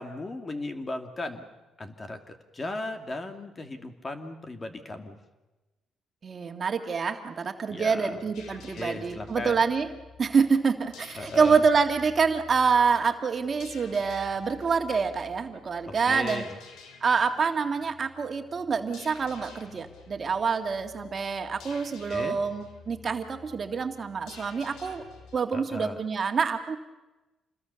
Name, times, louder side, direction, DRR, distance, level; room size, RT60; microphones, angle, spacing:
voice 1, 0.0-1.5 1.8-5.2 7.7-8.3 8.7-9.6 11.1-11.6 15.9-16.6 22.1-22.4 25.5-26.0, left 2 dB, 30° left, 6 dB, 2.5 m, -36 dB
voice 2, 6.2-9.9 10.2-16.4 17.0-25.0 25.3-26.8, right 5 dB, 40° right, 5 dB, 2.1 m, -26 dB
sound 1, 8.3-25.4, left 5 dB, 85° left, 2.9 m, -50 dB
27.5 x 21.0 x 7.1 m, 1.1 s
cardioid pair, 90°, 0 cm